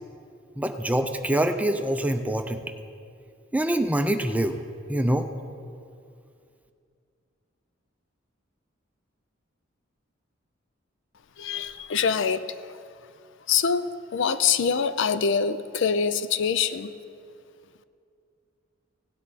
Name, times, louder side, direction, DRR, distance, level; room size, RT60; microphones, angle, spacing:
voice 1, 0.6-2.6 3.5-4.6 4.9-5.3, right 1 dB, 5° right, 7 dB, 0.5 m, -25 dB
voice 2, 11.4-12.4 13.5-16.9, left 6 dB, 65° left, 13 dB, 0.5 m, -24 dB
17.0 x 9.8 x 4.2 m, 2.4 s
head